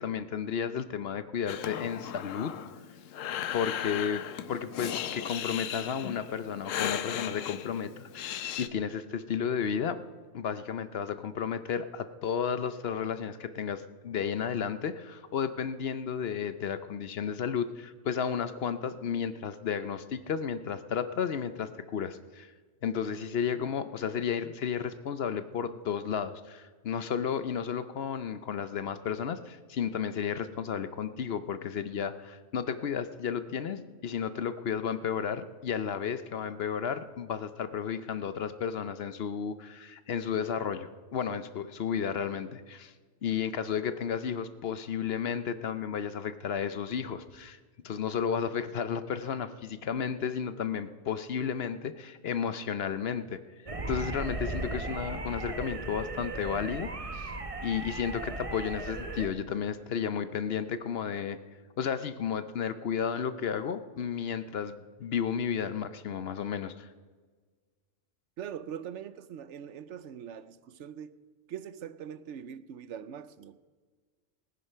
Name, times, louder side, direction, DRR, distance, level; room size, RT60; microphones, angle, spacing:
voice 1, 0.0-2.5 3.5-4.2 4.5-10.0 10.3-22.5 22.8-42.9 43.2-47.6 47.8-53.4 53.9-57.3 57.6-61.4 61.8-66.9, left 7 dB, 60° left, 0.8 m, -33 dB
Breathing, 1.5-8.7, left 10 dB, 90° left, 1.1 m, -36 dB
voice 2, 23.0-23.7 68.4-71.2 71.5-73.6, right 9 dB, 70° right, 0.9 m, -43 dB
sound 1, 53.7-59.3, right 3 dB, 30° right, 1.0 m, -37 dB
19.0 x 9.7 x 5.5 m
omnidirectional pair, 1.3 m